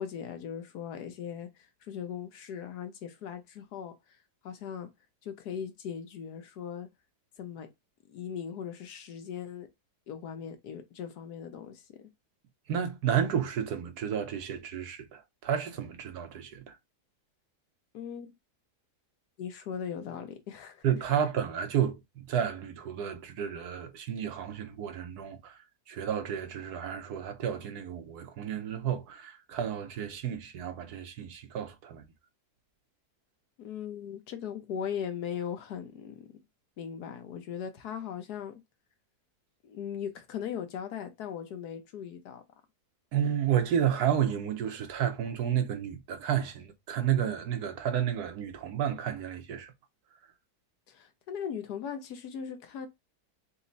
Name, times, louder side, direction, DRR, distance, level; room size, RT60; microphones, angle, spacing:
voice 1, 0.0-3.9 4.4-4.9 5.2-6.9 7.4-7.7 8.1-9.7 10.1-12.0 17.9-18.3 19.4-20.8 33.6-36.3 36.8-38.6 39.6-42.4 50.9-52.9, left 8 dB, 80° left, 1.4 m, -39 dB
voice 2, 12.7-16.8 20.8-25.6 25.9-32.0 43.1-49.7, right 9 dB, 75° right, 1.3 m, -31 dB
4.2 x 2.4 x 4.0 m
omnidirectional pair, 1.7 m